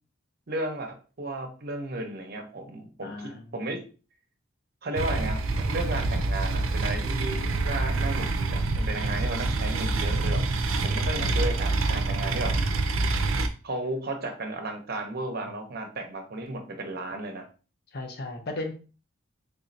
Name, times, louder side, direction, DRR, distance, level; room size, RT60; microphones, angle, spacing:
voice 1, 0.5-3.8 4.8-10.4 10.8-12.5 13.6-17.4, right 2 dB, 50° right, 4 dB, 0.7 m, -34 dB
voice 2, 3.0-3.4 11.0-11.3 15.4-15.6 17.9-18.7, left 2 dB, 50° left, 4 dB, 0.7 m, -36 dB
sound 1, 4.9-13.5, right 2 dB, 85° right, 0.5 m, -26 dB
3.5 x 3.0 x 2.6 m, 0.35 s
head